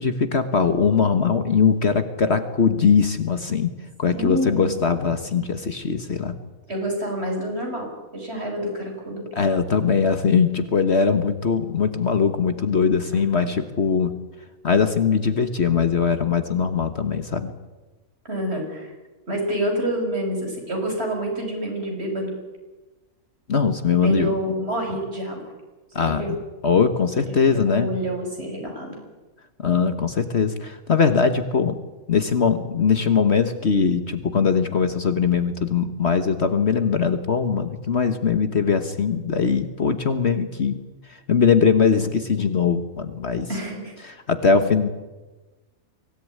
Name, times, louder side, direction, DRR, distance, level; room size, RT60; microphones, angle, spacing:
voice 1, 0.0-3.7 4.0-6.4 9.3-14.1 14.6-17.5 23.5-24.3 25.9-26.2 26.6-27.9 29.6-31.8 32.1-40.7 41.3-43.5 44.0-44.9, left 6 dB, 50° left, 9 dB, 1.5 m, -21 dB
voice 2, 4.1-4.7 6.7-9.2 13.1-13.5 18.2-18.9 19.3-22.3 24.0-25.5 25.9-26.3 27.3-29.0 43.5-43.9, right 1 dB, 45° right, 2 dB, 6.5 m, -28 dB
24.5 x 17.5 x 9.7 m, 1.2 s
omnidirectional pair, 1.5 m